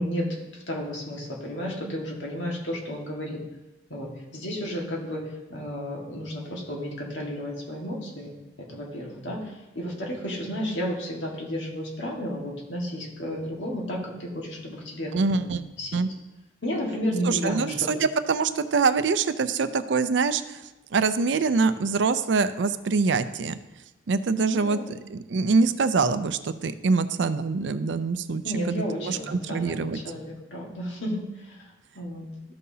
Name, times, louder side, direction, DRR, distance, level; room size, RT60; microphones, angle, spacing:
voice 1, 0.0-3.4 3.9-5.2 5.5-8.3 8.6-9.4 9.7-16.0 16.6-17.9 24.5-24.9 28.4-31.2 32.0-32.3, equal, 80° left, -2 dB, 1.8 m, -32 dB
voice 2, 15.1-15.6 15.9-16.1 17.3-20.4 20.9-23.6 24.1-28.4 28.7-30.0, right 4 dB, 70° right, 12 dB, 0.5 m, -24 dB
14.0 x 5.5 x 2.8 m, 1.0 s
head